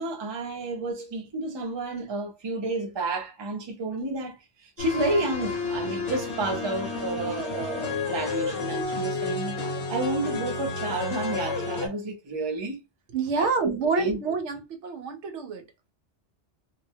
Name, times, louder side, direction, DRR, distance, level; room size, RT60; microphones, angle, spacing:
voice 1, 0.0-9.6 9.9-12.8 13.4-14.2, right 2 dB, 35° right, 0.5 m, -30 dB
sound 1, 4.8-11.9, left 3 dB, 65° left, 1.0 m, -31 dB
voice 2, 13.1-15.6, right 5 dB, 85° right, 0.9 m, -28 dB
2.3 x 2.1 x 2.7 m
omnidirectional pair, 1.2 m